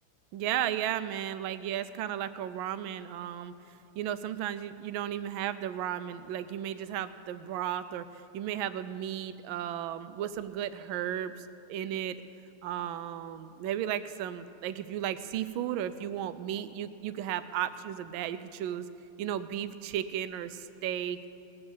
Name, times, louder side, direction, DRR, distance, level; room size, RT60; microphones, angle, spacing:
voice 1, 0.3-3.5 4.0-12.2 12.6-18.9 19.2-21.2, right 10 dB, 75° right, 12 dB, 1.3 m, -34 dB
19.0 x 6.8 x 7.1 m, 2.8 s
omnidirectional pair, 2.4 m